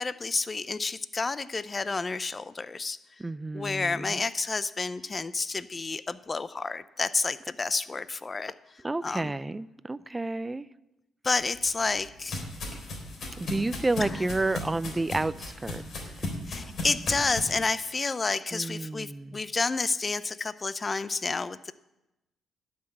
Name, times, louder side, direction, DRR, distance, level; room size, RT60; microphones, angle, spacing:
voice 1, 0.0-3.0 3.5-8.5 9.0-9.3 11.2-12.4 14.0-14.6 16.5-21.7, left 4 dB, 30° left, 16 dB, 0.6 m, -30 dB
voice 2, 3.2-4.2 8.8-10.7 13.4-15.8 16.2-16.3 18.5-19.4, right 2 dB, 15° right, 17 dB, 0.4 m, -30 dB
sound 1, 11.4-17.5, left 2 dB, 55° left, 3.8 m, -36 dB
12.0 x 6.0 x 8.7 m, 0.95 s
cardioid pair, 90°, 0 cm